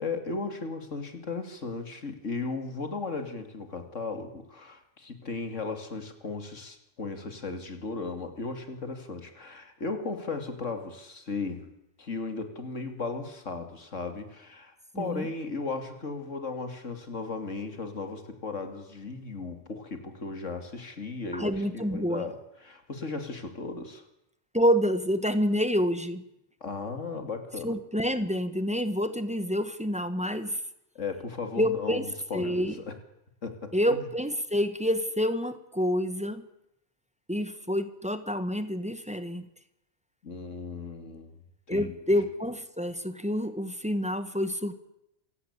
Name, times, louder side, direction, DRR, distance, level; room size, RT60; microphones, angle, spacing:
voice 1, 0.0-11.7 12.0-24.0 26.6-27.8 30.9-33.0 33.4-34.0 40.2-41.4 41.7-41.9, left 4 dB, 85° left, 7 dB, 3.0 m, -36 dB
voice 2, 14.9-15.3 21.3-22.2 24.5-26.2 27.6-30.6 31.6-32.1 32.3-32.7 33.7-36.4 37.3-39.5 41.7-44.7, equal, 5° right, 11 dB, 1.5 m, -28 dB
28.0 x 16.5 x 8.3 m, 0.85 s
omnidirectional pair, 1.3 m